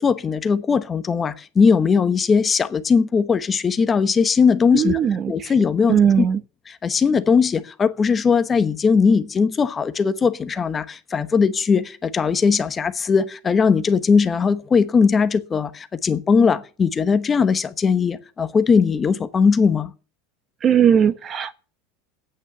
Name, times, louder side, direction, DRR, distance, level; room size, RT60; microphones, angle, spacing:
voice 1, 0.0-5.0 5.3-6.0 6.7-19.9, left 5 dB, 25° left, 1.1 m, -19 dB
voice 2, 4.7-5.5 5.9-6.4 20.6-21.5, right 8 dB, 30° right, 1.0 m, -18 dB
9.0 x 8.3 x 9.6 m
supercardioid pair, 120°, 0 cm